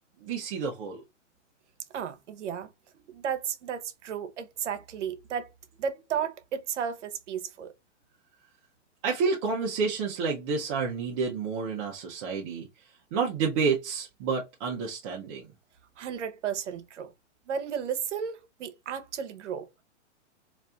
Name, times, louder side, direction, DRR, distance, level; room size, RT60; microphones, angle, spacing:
voice 1, 0.2-1.0 9.0-12.7 13.1-15.5, right 5 dB, 30° right, 0.7 m, -29 dB
voice 2, 1.9-2.7 3.1-5.5 5.8-7.7 16.0-17.1 17.5-19.7, right 7 dB, 75° right, 0.9 m, -33 dB
4.1 x 2.6 x 2.3 m
hypercardioid pair, 150°, 36 cm